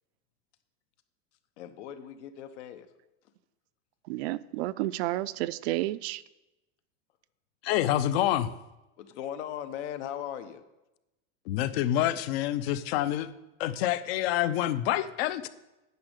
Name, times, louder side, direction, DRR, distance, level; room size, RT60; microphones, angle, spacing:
voice 1, 1.6-2.9 9.0-10.6, left 10 dB, 80° left, 9 dB, 1.1 m, -38 dB
voice 2, 4.1-6.2, right 16 dB, 65° right, 16 dB, 0.5 m, -31 dB
voice 3, 7.6-8.5 11.5-13.3 13.6-15.5, left 12 dB, 60° left, 14 dB, 0.7 m, -27 dB
9.5 x 6.4 x 6.6 m, 0.97 s
supercardioid pair, 165°, 34 cm